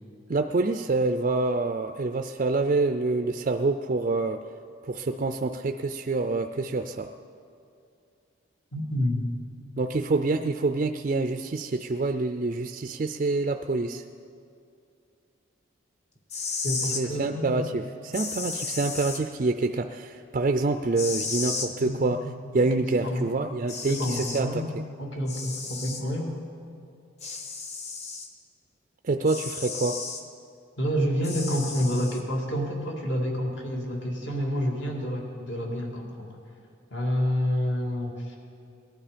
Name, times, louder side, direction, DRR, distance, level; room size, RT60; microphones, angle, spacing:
voice 1, 0.3-4.4 4.8-7.1 9.8-14.0 16.9-22.2 22.5-24.7 29.0-30.0, right 3 dB, 40° right, 7 dB, 0.4 m, -26 dB
voice 2, 8.7-9.3 16.6-17.7 21.8-22.3 22.8-23.3 23.9-24.7 25.0-26.4 30.8-36.4 36.9-38.4, equal, 60° left, 0 dB, 2.2 m, -29 dB
sound 1, 16.2-17.0 18.1-19.2 21.0-21.7 23.2-23.3 23.7-24.4 25.3-26.0 27.2-28.3 29.2-30.2 31.2-32.2, left 4 dB, 35° left, 1.0 m, -34 dB
18.0 x 11.5 x 5.1 m, 2.4 s
head